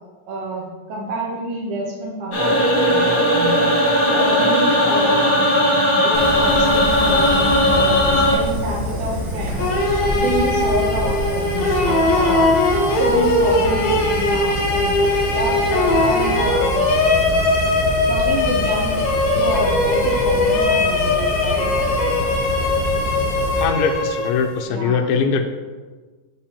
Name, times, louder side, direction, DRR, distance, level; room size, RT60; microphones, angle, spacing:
voice 1, 0.3-3.7 4.1-5.5 6.0-9.9 10.1-15.0 15.3-16.9 18.1-19.0 19.3-21.8 24.7-25.1, right 1 dB, 75° right, -2 dB, 2.7 m, -28 dB
sound 1, 2.3-8.3, equal, 40° left, 1.5 m, -17 dB
Fire, 6.1-23.6, equal, 50° right, 2.5 m, -27 dB
sound 2, 9.6-24.7, left 2 dB, 65° left, 2.0 m, -20 dB
voice 2, 23.6-25.5, left 5 dB, 85° left, 4 dB, 2.5 m, -21 dB
7.9 x 6.9 x 2.9 m, 1.4 s
omnidirectional pair, 4.4 m